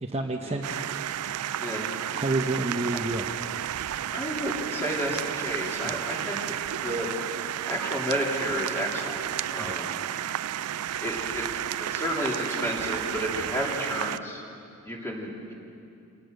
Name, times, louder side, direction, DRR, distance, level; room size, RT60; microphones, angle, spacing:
voice 1, 0.0-0.8 2.1-3.4 5.8-6.0 9.6-9.8 13.4-13.5, right 2 dB, 30° right, 2 dB, 0.9 m, -30 dB
sound 1, 0.6-14.2, right 11 dB, 85° right, 0.4 m, -32 dB
voice 2, 1.6-1.9 2.9-3.0 4.1-6.6 6.8-7.3 7.6-10.1 11.0-11.5 11.8-14.4 14.8-15.5, equal, 10° left, -2 dB, 3.2 m, -32 dB
26.5 x 19.0 x 6.5 m, 2.6 s
head